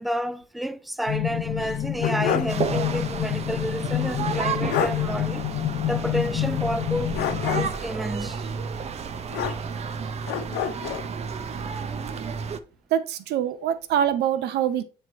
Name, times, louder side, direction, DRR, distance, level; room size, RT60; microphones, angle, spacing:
voice 1, 0.0-5.5 5.9-7.2 7.5-8.5 10.5-10.7, right 1 dB, ahead, 0.4 m, -30 dB
sound 1, 1.1-7.7, left 13 dB, 50° left, 0.7 m, -28 dB
sound 2, 1.6-2.6 2.9-3.0 4.3-4.4 4.7-5.0 7.1-7.9 9.3-9.9 10.3-11.1, left 9 dB, 85° left, 0.8 m, -29 dB
sound 3, 2.5-12.6, right 6 dB, 40° right, 0.6 m, -32 dB
voice 2, 12.9-14.8, right 10 dB, 75° right, 0.8 m, -24 dB
7.7 x 3.2 x 4.2 m
cardioid pair, 110°, 17 cm